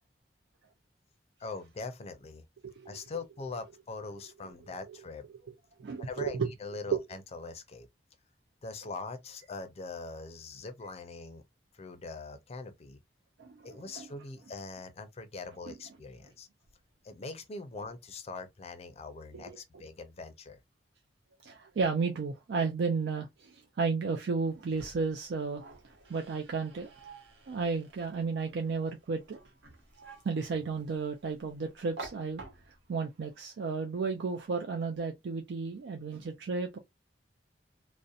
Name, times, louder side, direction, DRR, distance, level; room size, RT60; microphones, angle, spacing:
voice 1, 1.4-2.4 2.9-5.2 6.0-7.9 8.6-11.4 11.7-13.0 13.6-16.5 17.0-20.6, left 3 dB, 35° left, 0.5 m, -42 dB
voice 2, 5.8-6.5 6.9-7.0 13.4-14.1 15.7-15.8 19.3-19.6 21.4-25.6 26.1-26.9 27.5-29.4 30.2-32.4 32.9-36.8, right 4 dB, 70° right, 0.4 m, -33 dB
sound 1, 24.4-33.0, right 3 dB, 85° right, 0.9 m, -51 dB
2.7 x 2.1 x 2.3 m
head